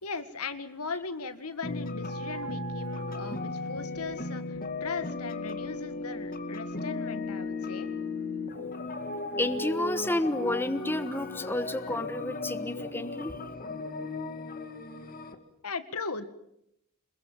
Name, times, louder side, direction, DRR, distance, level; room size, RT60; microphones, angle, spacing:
voice 1, 0.0-7.9 15.6-16.2, left 4 dB, 75° left, 11 dB, 1.9 m, -38 dB
sound 1, 1.6-15.4, left 3 dB, 40° left, 2.2 m, -36 dB
voice 2, 9.4-13.4, left 1 dB, 10° left, 10 dB, 1.2 m, -30 dB
27.0 x 21.5 x 7.5 m, 0.76 s
head